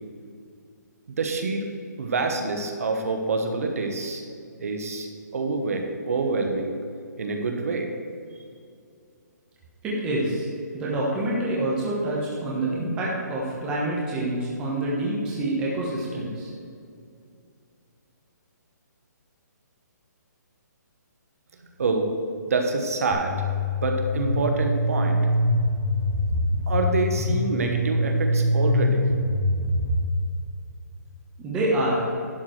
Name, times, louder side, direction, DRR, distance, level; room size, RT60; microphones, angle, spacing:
voice 1, 1.1-1.6 2.0-4.2 4.6-5.1 5.3-6.7 7.2-7.9 21.8-22.1 22.5-23.3 23.8-25.2 26.7-29.0, right 3 dB, 50° right, 3 dB, 1.2 m, -26 dB
voice 2, 9.8-10.5 10.7-16.5 31.4-32.1, right 1 dB, 10° right, -5 dB, 1.1 m, -26 dB
sound 1, 23.1-30.0, left 1 dB, 15° left, 1.2 m, -24 dB
11.5 x 4.8 x 6.4 m, 2.4 s
hypercardioid pair, 175°, 10 cm